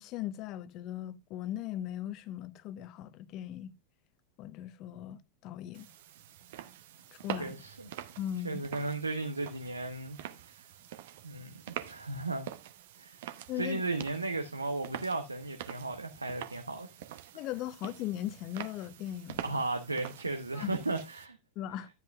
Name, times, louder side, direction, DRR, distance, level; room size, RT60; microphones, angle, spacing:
voice 1, 0.0-3.7 4.4-5.9 7.1-7.5 8.2-8.6 13.5-13.8 17.3-19.6 20.5-20.7 21.6-21.9, left 12 dB, 40° left, 0.7 m, -38 dB
sound 1, 5.7-21.3, right 11 dB, 55° right, 0.9 m, -46 dB
voice 2, 7.4-7.9 8.4-10.2 10.4-10.7 11.2-12.5 12.9-13.2 13.5-16.9 19.4-21.4, right 2 dB, 80° right, 0.8 m, -35 dB
12.0 x 8.0 x 2.3 m
figure-of-eight pair, 90°, 0 cm